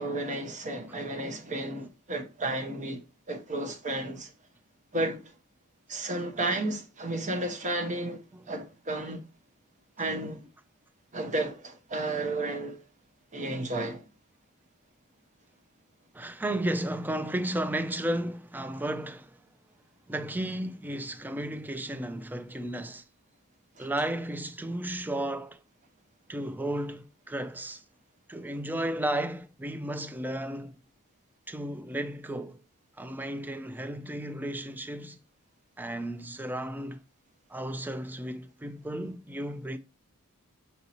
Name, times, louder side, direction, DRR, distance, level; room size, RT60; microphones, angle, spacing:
voice 1, 0.0-4.3 4.9-5.2 5.9-8.2 8.5-9.2 10.0-10.5 11.1-12.8 13.3-14.0 23.8-23.9, right 2 dB, 35° right, 0.9 m, -32 dB
voice 2, 16.1-19.4 20.1-23.0 23.8-25.6 26.3-27.8 28.3-30.8 31.5-32.6 33.0-35.2 35.8-37.0 37.5-39.8, right 1 dB, 10° right, 0.4 m, -33 dB
5.4 x 2.7 x 2.9 m
head